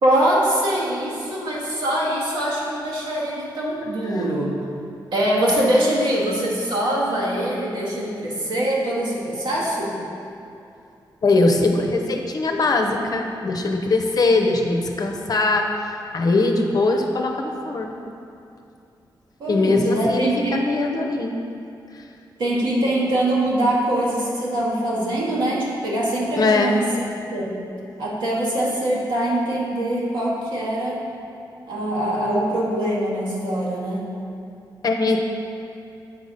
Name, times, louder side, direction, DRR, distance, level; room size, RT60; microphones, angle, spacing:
voice 1, 0.0-4.6 5.1-10.0 19.4-20.7 22.4-27.1 27.3-27.5 28.0-31.0 31.6-34.1, right 1 dB, 75° right, -5 dB, 1.8 m, -23 dB
voice 2, 11.2-15.7 16.1-17.9 19.5-21.4 21.9-22.1 26.4-26.7 34.8-35.2, left 3 dB, 50° left, 3 dB, 0.8 m, -21 dB
8.2 x 4.1 x 5.2 m, 2.7 s
cardioid pair, 85°, 8 cm